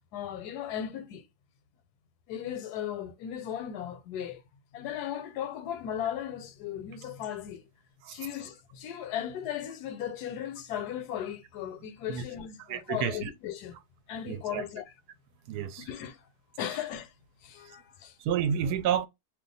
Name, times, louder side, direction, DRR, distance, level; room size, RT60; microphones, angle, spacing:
voice 1, 0.1-1.3 2.3-4.4 4.7-7.7 8.1-13.8 14.1-14.8 15.8-16.2 16.6-17.1 17.4-18.1, left 10 dB, 80° left, 1.1 m, -36 dB
voice 2, 12.7-13.3 14.3-14.6 15.5-15.9 18.2-19.1, right 8 dB, 80° right, 1.1 m, -30 dB
2.6 x 2.3 x 3.8 m
omnidirectional pair, 1.7 m